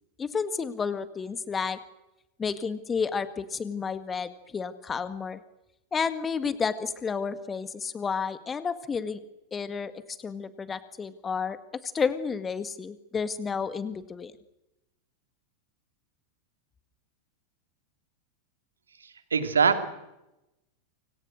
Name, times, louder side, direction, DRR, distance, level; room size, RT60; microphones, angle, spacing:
voice 1, 0.2-1.8 2.4-5.4 5.9-9.2 9.5-11.6 11.8-14.3, left 5 dB, 20° left, 13 dB, 1.9 m, -31 dB
voice 2, 19.3-19.9, right 5 dB, 70° right, 8 dB, 3.0 m, -22 dB
28.5 x 26.0 x 6.5 m, 0.93 s
figure-of-eight pair, 90°, 0 cm